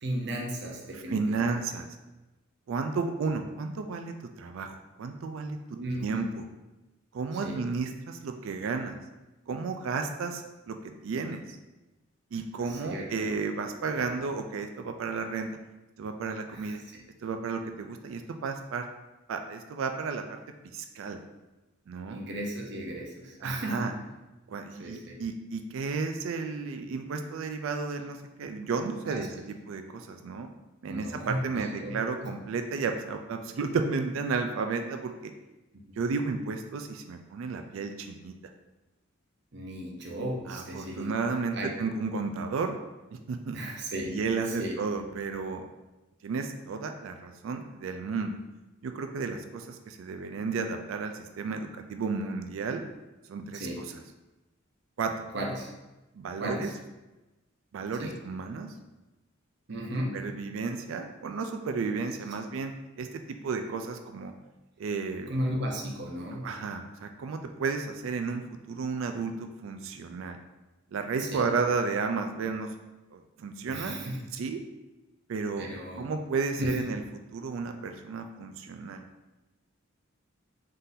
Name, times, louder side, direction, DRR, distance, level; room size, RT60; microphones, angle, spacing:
voice 1, 0.0-1.8 5.7-6.3 7.3-7.6 12.7-13.3 16.5-16.7 22.1-23.9 24.8-25.2 29.0-29.2 30.9-32.0 39.5-41.1 41.5-41.7 43.5-44.2 44.5-44.8 53.5-53.8 55.3-55.7 56.4-56.7 58.0-58.1 59.7-60.2 65.3-66.5 71.2-71.4 73.7-74.2 75.6-76.1 76.6-76.7, right 1 dB, 55° right, -1 dB, 0.8 m, -35 dB
voice 2, 0.9-1.9 2.7-6.5 7.1-9.0 9.5-11.6 12.3-15.5 16.0-16.8 17.2-18.9 19.3-20.2 20.7-21.2 21.9-22.2 23.4-23.9 24.5-30.5 30.8-35.3 36.0-38.3 40.5-42.8 43.1-43.6 44.0-45.7 46.2-48.4 48.8-52.8 53.3-53.7 55.0-55.3 56.2-56.7 57.7-58.7 60.1-62.7 63.0-64.3 64.8-65.3 66.4-70.4 70.9-72.7 73.1-74.6 75.3-75.7 76.0-77.0 77.3-79.0, right 4 dB, 70° right, 6 dB, 0.3 m, -33 dB
4.0 x 3.8 x 2.6 m, 1.1 s
head